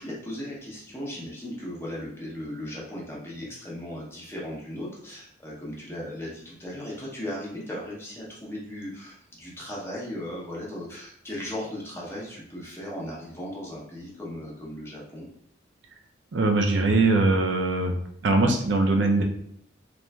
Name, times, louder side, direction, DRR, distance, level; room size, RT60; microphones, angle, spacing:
voice 1, 0.0-15.3, left 1 dB, 15° left, -5 dB, 0.6 m, -37 dB
voice 2, 16.3-17.9 18.2-19.2, right 2 dB, 70° right, 3 dB, 0.4 m, -21 dB
3.0 x 2.4 x 2.2 m, 0.69 s
head